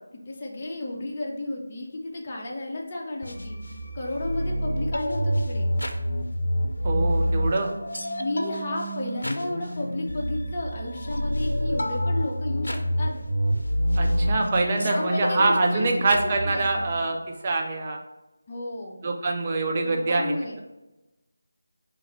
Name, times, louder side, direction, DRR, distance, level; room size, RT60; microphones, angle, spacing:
voice 1, 0.1-5.7 8.2-13.1 14.8-16.1 16.4-17.2 18.5-19.0 19.8-20.6, left 1 dB, 25° left, -3 dB, 0.6 m, -33 dB
sound 1, 3.2-16.9, equal, 70° left, 0.6 m, -27 dB
voice 2, 6.8-7.7 14.0-17.2 17.4-18.0 19.0-20.6, right 3 dB, 30° right, 2 dB, 0.5 m, -25 dB
5.6 x 2.5 x 3.2 m, 1.0 s
figure-of-eight pair, 160°, 0 cm